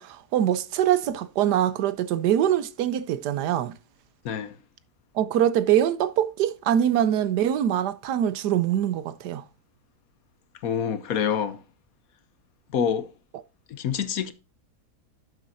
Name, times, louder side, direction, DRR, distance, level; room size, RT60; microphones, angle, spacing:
voice 1, 0.0-3.7 5.1-9.4, right 10 dB, 90° right, 1.3 m, -23 dB
voice 2, 4.2-4.6 10.6-11.6 12.7-13.1 13.7-14.3, left 7 dB, 65° left, 1.2 m, -26 dB
11.5 x 7.4 x 2.7 m
omnidirectional pair, 1.7 m